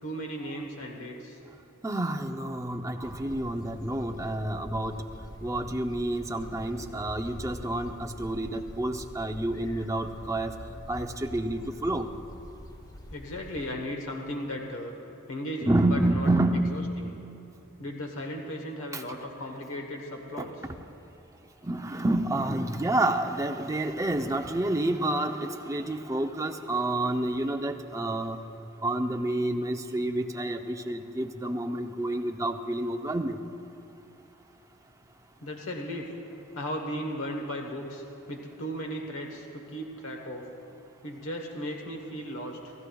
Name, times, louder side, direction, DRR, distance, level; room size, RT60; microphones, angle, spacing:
voice 1, 0.0-1.4 3.9-4.4 13.1-14.9 15.3-17.1 17.8-20.7 35.4-36.1 36.5-40.5 41.0-42.7, equal, 65° left, 2 dB, 1.2 m, -36 dB
voice 2, 1.8-5.0 5.4-10.5 10.9-12.1 15.6-16.9 18.9-19.0 20.4-20.5 21.6-28.4 28.8-33.4, right 1 dB, 15° right, 5 dB, 0.6 m, -29 dB
sound 1, 3.0-13.7, left 1 dB, 15° left, 0.7 m, -45 dB
28.5 x 13.0 x 2.3 m, 2.9 s
head